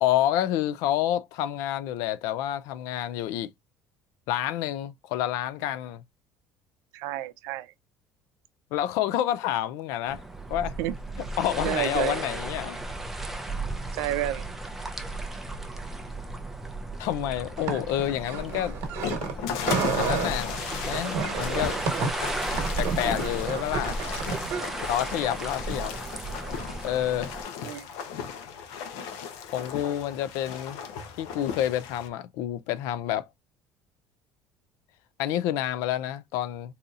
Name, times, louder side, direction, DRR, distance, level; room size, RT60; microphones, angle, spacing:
voice 1, 0.0-3.5 4.3-6.0 8.7-10.2 10.5-10.8 11.4-12.8 17.0-18.8 20.0-20.6 20.8-21.8 22.8-24.0 24.9-25.9 26.8-27.3 29.5-30.8 31.2-33.3 35.2-36.7, left 12 dB, 70° left, 0.3 m, -28 dB
voice 2, 6.9-7.7 10.8-10.9 11.6-12.2 13.9-14.4 17.7-17.8 27.6-27.9, right 13 dB, 75° right, 0.5 m, -30 dB
sound 1, 10.1-27.4, right 2 dB, 5° right, 0.4 m, -35 dB
sound 2, 17.6-19.4 19.6-20.3 20.9-24.7, right 6 dB, 60° right, 1.2 m, -31 dB
sound 3, 18.0-32.1, left 7 dB, 85° left, 0.7 m, -36 dB
3.9 x 2.7 x 2.4 m
cardioid pair, 160°, 5 cm